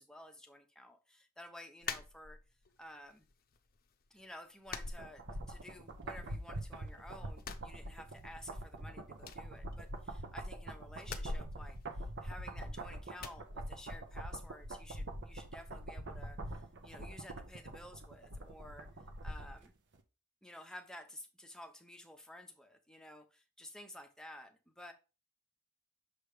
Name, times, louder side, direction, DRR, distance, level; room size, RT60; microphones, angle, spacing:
voice 1, 0.0-2.4 2.8-3.3 4.1-18.9 19.2-19.7 20.4-24.9, left 1 dB, 5° left, 0.9 m, -53 dB
sound 1, 1.8-2.7 3.1-3.8 4.1-4.2 4.7-5.8 6.1-6.9 7.3-8.5 8.7-8.8 9.2-10.3 11.0-12.7 13.2-13.5, left 4 dB, 40° left, 0.7 m, -45 dB
sound 2, 5.0-19.7 20.0-20.1, right 1 dB, 55° right, 1.0 m, -44 dB
6.6 x 3.3 x 4.9 m
head